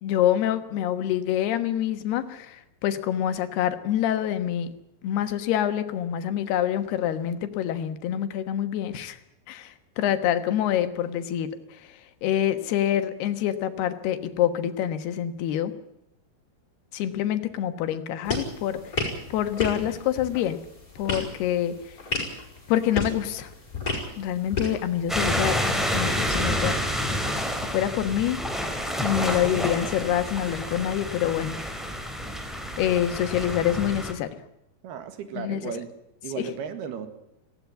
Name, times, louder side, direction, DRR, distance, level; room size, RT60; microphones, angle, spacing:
voice 1, 0.0-4.7 5.0-9.2 9.5-15.7 16.9-20.6 21.0-21.9 22.7-23.5 24.2-26.9 27.7-28.4 29.0-31.6 32.8-34.4 35.3-35.7 36.4-36.5, left 11 dB, 85° left, 10 dB, 3.4 m, -26 dB
sound 1, 18.2-25.2, left 3 dB, 20° left, 5.7 m, -33 dB
sound 2, 25.1-34.1, equal, ahead, 2.7 m, -29 dB
voice 2, 34.8-35.9 36.2-37.1, right 7 dB, 80° right, 9 dB, 3.8 m, -35 dB
19.0 x 16.5 x 9.2 m, 0.84 s
omnidirectional pair, 4.5 m